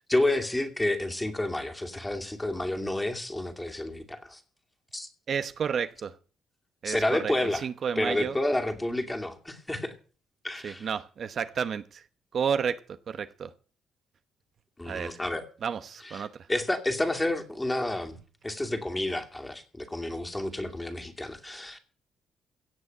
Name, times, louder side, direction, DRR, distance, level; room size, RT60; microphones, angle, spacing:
voice 1, 0.1-4.4 4.9-5.1 6.8-7.7 8.0-10.0 10.4-10.9 14.8-15.4 16.0-18.2 18.4-21.8, left 1 dB, 10° left, 2.5 m, -30 dB
voice 2, 5.3-6.1 6.8-7.3 7.6-8.4 10.6-12.0 12.3-12.8 13.1-13.5 14.8-15.2 15.6-16.3, right 7 dB, 55° right, 0.9 m, -31 dB
16.5 x 7.1 x 7.8 m
cardioid pair, 90°, 0 cm